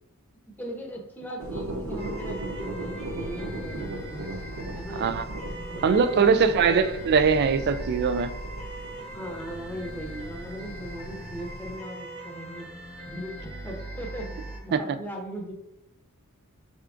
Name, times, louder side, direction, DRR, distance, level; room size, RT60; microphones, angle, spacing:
voice 1, 0.5-4.3 4.7-5.1 5.6-6.8 9.1-12.7 13.1-15.5, equal, 10° left, 0.8 m, -39 dB
sound 1, 1.4-11.8, right 1 dB, 70° right, 0.7 m, -38 dB
sound 2, 2.0-14.6, right 1 dB, 30° right, 1.0 m, -40 dB
voice 2, 5.8-8.3 14.7-14.8, right 5 dB, 50° right, 0.3 m, -21 dB
5.5 x 3.5 x 2.5 m
head